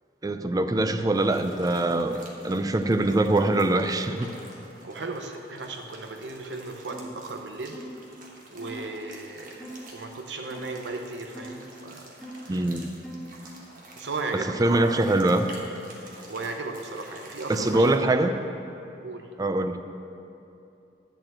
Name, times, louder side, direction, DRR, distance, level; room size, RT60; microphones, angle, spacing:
voice 1, 0.2-4.3 12.5-12.9 14.3-15.5 17.5-18.4 19.4-19.8, right 2 dB, 20° right, 8 dB, 0.4 m, -23 dB
sound 1, 1.1-18.1, right 2 dB, 50° right, 1.3 m, -49 dB
voice 2, 4.8-7.7 8.5-12.1 14.0-15.1 16.3-17.9 18.2-18.3 19.0-19.3, right 3 dB, 80° right, 3 dB, 0.7 m, -36 dB
sound 2, 6.9-7.2 7.7-8.0 8.6-8.8 9.6-9.9 10.5-10.8 11.3-11.6 12.2-12.5 13.0-13.3, right 1 dB, ahead, 0.9 m, -41 dB
11.0 x 4.4 x 7.6 m, 2.7 s
head